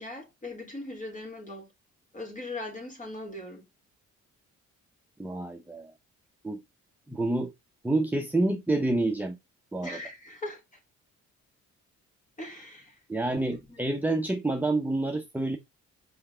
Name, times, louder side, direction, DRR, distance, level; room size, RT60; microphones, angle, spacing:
voice 1, 0.0-1.7 2.1-3.6 9.8-10.6 12.4-12.9 13.3-13.4 13.7-13.9, left 2 dB, 25° left, 3.8 m, -39 dB
voice 2, 5.2-5.9 6.4-6.6 7.1-7.5 7.8-9.4 9.7-10.0 13.1-15.6, right 2 dB, 5° right, 0.9 m, -28 dB
5.7 x 5.4 x 3.7 m
cardioid pair, 90°, 30 cm